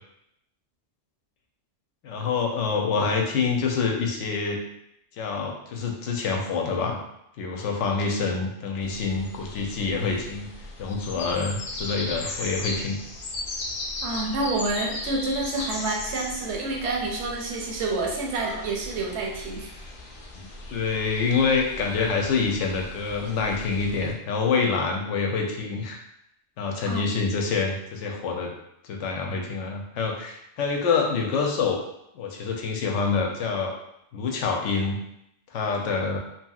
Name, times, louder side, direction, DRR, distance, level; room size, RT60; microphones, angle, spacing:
voice 1, 2.0-4.6 5.2-7.0 7.4-10.5 10.8-13.0 20.3-26.0 26.6-28.5 28.8-31.8 32.1-33.7 34.1-35.0 35.5-36.2, left 4 dB, 90° left, 1 dB, 0.9 m, -26 dB
sound 1, 8.8-24.1, left 2 dB, 60° left, 0.6 m, -37 dB
voice 2, 14.0-19.7 26.9-27.1, right 2 dB, 75° right, 0 dB, 0.9 m, -28 dB
2.8 x 2.7 x 2.3 m, 0.79 s
omnidirectional pair, 1.2 m